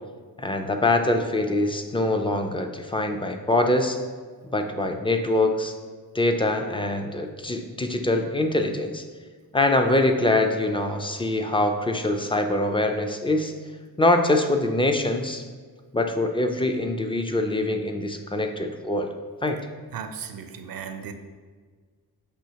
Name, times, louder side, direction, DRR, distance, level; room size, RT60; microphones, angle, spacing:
voice 1, 0.4-4.0 4.5-5.8 6.1-9.0 9.5-13.5 14.0-15.4 15.9-19.1 19.4-19.6, left 2 dB, 15° left, 5 dB, 0.3 m, -24 dB
voice 2, 19.9-21.1, right 7 dB, 60° right, 7 dB, 0.5 m, -36 dB
6.3 x 2.7 x 2.8 m, 1.5 s
cardioid pair, 65°, 40 cm